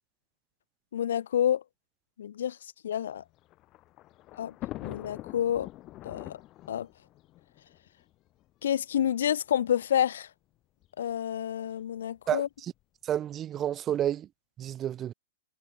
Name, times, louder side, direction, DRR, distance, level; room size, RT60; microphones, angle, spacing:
voice 1, 0.9-1.6 2.2-2.6 2.8-3.2 4.4-4.5 4.8-5.7 6.0-6.4 6.7-6.9 8.6-10.3 11.0-12.5, left 10 dB, 75° left, 3.1 m, -28 dB
Thunder, 3.2-8.5 9.3-9.4 9.6-9.7 10.8-11.1, left 16 dB, 25° left, 5.1 m, -44 dB
voice 2, 12.3-12.7 13.0-14.3 14.6-15.1, right 11 dB, 20° right, 0.7 m, -30 dB
hypercardioid pair, 160°, 0 cm